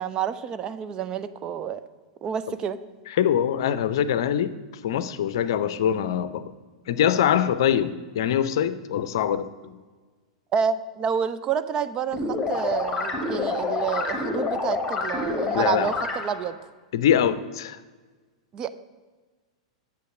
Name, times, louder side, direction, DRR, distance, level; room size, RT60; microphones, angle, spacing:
voice 1, 0.0-1.8 2.2-2.8 10.5-16.6 18.5-18.7, right 7 dB, 25° right, 12 dB, 0.5 m, -29 dB
voice 2, 3.2-4.5 4.8-6.5 6.9-9.7 15.5-15.9 16.9-17.8, left 9 dB, 50° left, 14 dB, 0.6 m, -23 dB
sound 1, 12.1-16.5, left 3 dB, 10° left, 1.8 m, -28 dB
9.4 x 7.0 x 6.3 m, 1.4 s
figure-of-eight pair, 95°, 3 cm